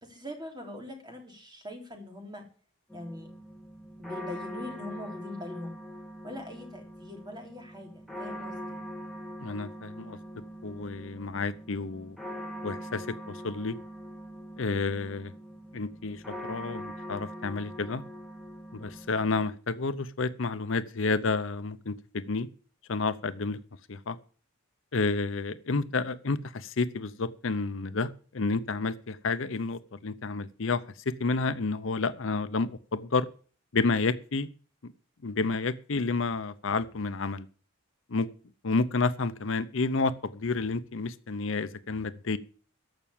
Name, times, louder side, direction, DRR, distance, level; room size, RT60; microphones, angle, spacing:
voice 1, 0.0-2.4 2.9-3.3 4.0-5.8 6.2-8.8, left 1 dB, 20° right, 2 dB, 3.2 m, -42 dB
sound 1, 2.9-19.5, equal, ahead, 1.8 m, -42 dB
voice 2, 9.4-10.2 10.6-12.2 12.6-13.8 14.6-15.3 15.7-18.0 18.7-22.5 22.9-23.6 23.9-24.2 24.9-30.8 31.2-33.3 33.7-34.5 35.2-37.5 38.1-38.3 38.6-42.4, left 3 dB, 65° left, 13 dB, 0.7 m, -30 dB
14.5 x 5.9 x 8.7 m, 0.42 s
head